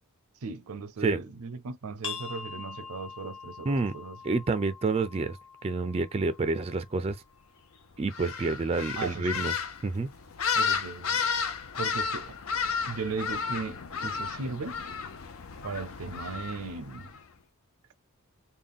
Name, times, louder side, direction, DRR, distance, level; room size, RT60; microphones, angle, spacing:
voice 1, 0.4-4.2 9.0-9.3 10.5-11.2 11.8-12.4 12.9-14.8 15.6-17.1, right 4 dB, 80° right, 0.5 m, -37 dB
sound 1, 2.0-7.4, left 6 dB, 25° left, 0.9 m, -44 dB
voice 2, 4.2-5.4 5.6-7.2 8.0-9.5 9.8-10.1, right 3 dB, 25° right, 0.4 m, -28 dB
sound 2, 8.1-17.2, left 6 dB, 70° left, 0.6 m, -33 dB
3.5 x 2.2 x 3.6 m
head